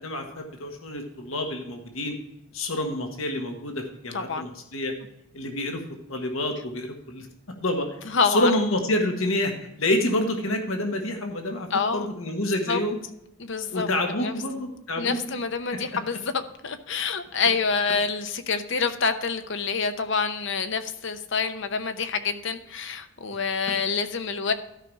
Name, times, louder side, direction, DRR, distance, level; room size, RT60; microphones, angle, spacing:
voice 1, 0.0-2.2 2.5-4.9 5.3-5.8 6.1-7.3 7.6-7.9 8.3-11.7 11.9-13.0 13.7-15.2, left 1 dB, 75° left, 3 dB, 1.6 m, -27 dB
voice 2, 4.1-4.5 8.0-8.5 11.7-12.1 12.7-12.8 13.4-14.3 15.0-24.5, left 5 dB, 60° left, 9 dB, 0.8 m, -27 dB
12.5 x 5.5 x 4.7 m, 0.82 s
head